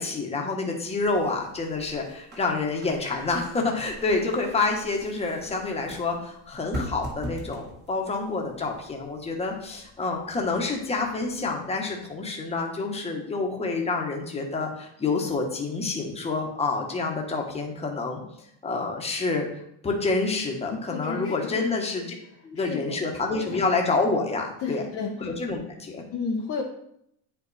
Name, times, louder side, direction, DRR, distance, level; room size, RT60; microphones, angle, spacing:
voice 1, 0.0-18.2 18.6-19.5 19.8-22.0 22.4-24.8 25.2-26.0, left 3 dB, 15° left, 1 dB, 1.3 m, -28 dB
sound 1, 0.9-11.6, right 1 dB, 25° right, 1.9 m, -43 dB
voice 2, 20.7-21.8 22.6-23.0 23.4-23.6 24.6-25.1 26.1-26.6, left 5 dB, 30° left, -1 dB, 0.8 m, -32 dB
9.2 x 5.0 x 4.2 m, 0.74 s
cardioid pair, 155°, 44 cm